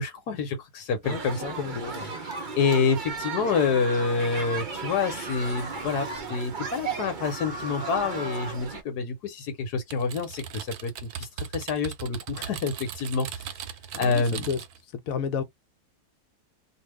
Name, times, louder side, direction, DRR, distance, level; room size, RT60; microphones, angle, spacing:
voice 1, 0.0-1.6 2.3-11.3 11.5-13.5 14.0-14.5, left 5 dB, 85° left, 1.4 m, -27 dB
voice 2, 1.0-2.1 13.9-14.6 14.9-15.4, left 6 dB, 65° left, 1.0 m, -32 dB
sound 1, 1.0-8.8, right 5 dB, 45° right, 0.6 m, -35 dB
sound 2, 3.4-4.2 5.0-6.3 7.2-8.7, right 1 dB, 5° right, 1.2 m, -40 dB
Typing, 9.9-14.8, right 8 dB, 75° right, 1.1 m, -38 dB
2.8 x 2.5 x 3.2 m
omnidirectional pair, 1.7 m